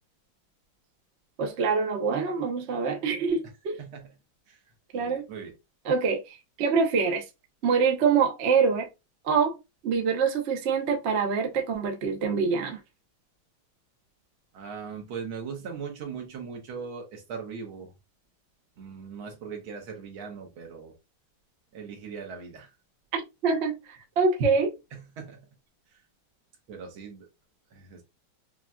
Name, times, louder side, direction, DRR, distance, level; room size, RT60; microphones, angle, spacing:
voice 1, 1.4-3.8 4.9-5.3 5.8-7.2 7.6-8.9 9.2-9.6 9.8-12.8 23.1-24.7, right 5 dB, 55° right, 0.7 m, -25 dB
voice 2, 3.8-4.1 4.5-4.6 4.9-5.5 14.5-17.9 18.8-20.9 21.7-22.7 24.9-25.5 26.7-27.3 27.7-28.0, right 6 dB, 90° right, 2.0 m, -39 dB
5.9 x 2.4 x 2.2 m
omnidirectional pair, 2.2 m